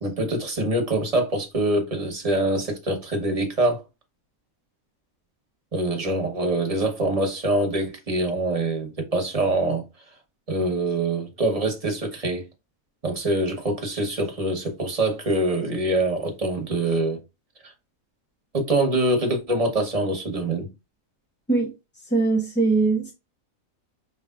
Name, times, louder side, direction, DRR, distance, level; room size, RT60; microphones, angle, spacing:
voice 1, 0.0-3.8 5.7-9.8 10.5-12.4 13.0-17.2 18.5-20.7, right 2 dB, 30° right, 1.0 m, -24 dB
voice 2, 22.1-23.1, right 3 dB, 15° left, 0.5 m, -21 dB
5.5 x 3.3 x 2.3 m
omnidirectional pair, 1.4 m